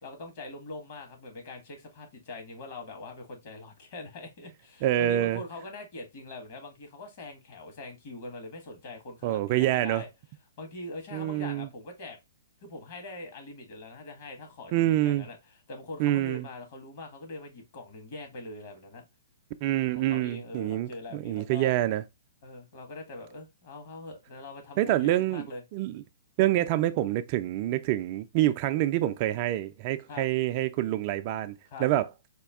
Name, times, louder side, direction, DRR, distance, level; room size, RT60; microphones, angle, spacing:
voice 1, 0.0-10.1 10.6-12.2 12.6-15.4 15.7-19.0 19.8-21.7 22.4-25.6 30.1-30.3 31.7-31.9, left 2 dB, 50° left, 1.4 m, -43 dB
voice 2, 4.8-5.4 9.2-10.0 11.1-11.7 14.7-15.3 16.0-16.5 19.6-22.0 24.8-25.5 25.7-26.0 26.4-31.5 31.8-32.1, right 14 dB, 40° right, 0.3 m, -26 dB
4.3 x 2.3 x 3.4 m
hypercardioid pair, 120°, 0 cm